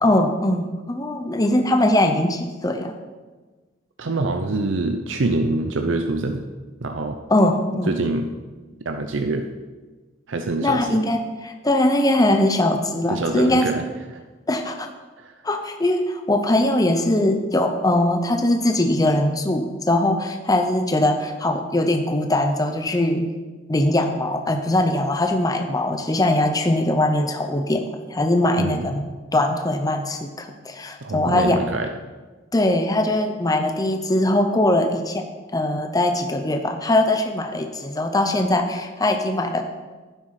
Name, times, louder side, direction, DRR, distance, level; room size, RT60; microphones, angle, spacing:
voice 1, 0.0-3.0 7.3-7.9 10.6-13.7 14.5-14.9 15.4-23.3 23.7-31.6 32.5-35.2 35.5-39.6, left 1 dB, 20° left, 5 dB, 0.7 m, -21 dB
voice 2, 4.0-6.4 6.8-7.2 7.9-8.3 8.8-9.5 10.3-10.9 13.1-13.8 15.2-15.3 28.6-28.9 31.0-31.9, right 2 dB, 75° right, 6 dB, 0.7 m, -25 dB
11.5 x 9.9 x 4.9 m, 1.3 s
head